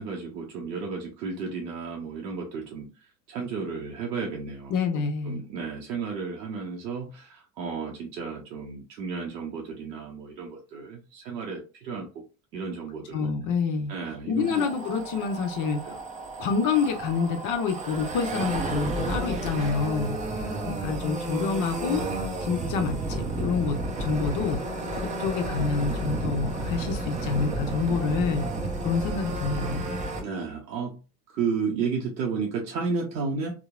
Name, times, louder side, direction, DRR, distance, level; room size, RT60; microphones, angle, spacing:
voice 1, 0.0-12.1 12.5-13.3 13.9-14.6 15.8-16.0 30.2-31.0 31.3-33.6, right 5 dB, 90° right, 0.6 m, -33 dB
voice 2, 4.7-5.4 13.1-13.9 14.3-15.8 16.4-20.2 20.7-22.1 22.4-24.6 25.0-28.5 28.8-29.9, left 5 dB, 40° left, 0.6 m, -27 dB
sound 1, 14.4-30.2, right 2 dB, 15° right, 0.4 m, -32 dB
2.8 x 2.0 x 2.3 m
hypercardioid pair, 80°, 49 cm